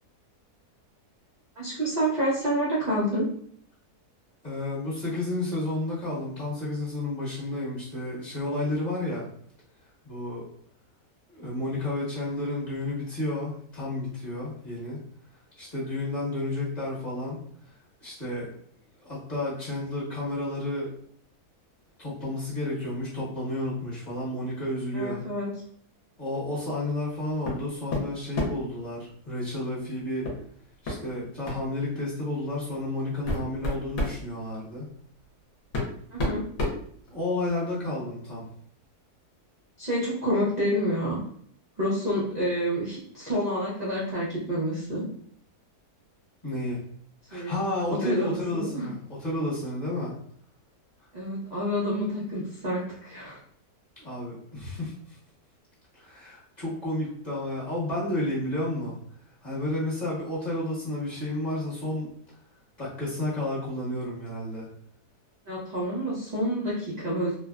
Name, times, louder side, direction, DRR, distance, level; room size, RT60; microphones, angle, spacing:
voice 1, 1.6-3.3 24.9-25.5 36.1-36.4 39.8-41.2 41.8-45.1 47.3-48.9 51.1-53.4 65.5-67.4, equal, 45° right, -8 dB, 0.5 m, -28 dB
voice 2, 4.4-9.2 10.0-10.4 11.3-15.0 15.6-17.4 18.0-18.5 19.1-20.9 22.0-25.2 26.2-30.3 30.8-34.9 37.1-38.4 46.4-46.8 47.3-50.1 54.0-54.9 55.9-59.0 59.4-62.1 62.8-64.7, left 1 dB, 30° left, -8 dB, 1.2 m, -31 dB
sound 1, 27.4-27.6 27.9-28.7 30.2-30.4 30.8-31.0 31.4-31.7 32.5-32.6 33.1-34.2 35.2-35.3 35.7-37.5, left 1 dB, 65° left, 1.2 m, -30 dB
3.1 x 2.1 x 2.3 m, 0.62 s
omnidirectional pair, 1.7 m